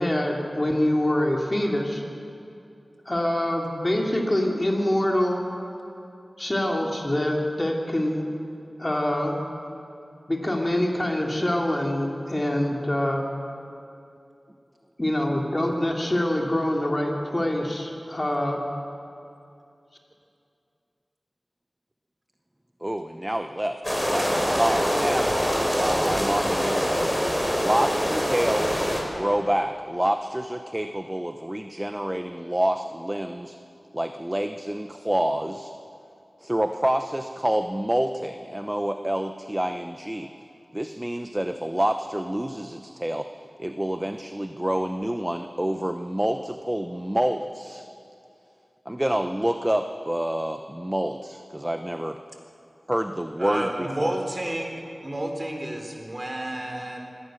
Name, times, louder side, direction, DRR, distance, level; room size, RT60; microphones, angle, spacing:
voice 1, 0.0-2.0 3.0-5.4 6.4-8.2 8.8-9.4 10.3-13.2 15.0-18.6, left 1 dB, 30° left, 0 dB, 3.2 m, -25 dB
voice 2, 22.8-23.8 24.1-24.3 24.6-25.3 25.8-27.1 27.6-28.9 29.1-33.6 33.9-35.7 36.4-40.3 40.7-43.3 43.6-47.9 48.9-52.2 52.9-54.2, right 1 dB, 15° right, 7 dB, 0.9 m, -27 dB
sound 1, 23.8-29.0, equal, 10° left, 4.9 m, -24 dB
voice 3, 53.4-54.8 55.0-57.1, right 1 dB, 30° right, 3 dB, 3.7 m, -30 dB
25.0 x 17.5 x 6.6 m, 2.6 s
wide cardioid pair, 50°, 0 cm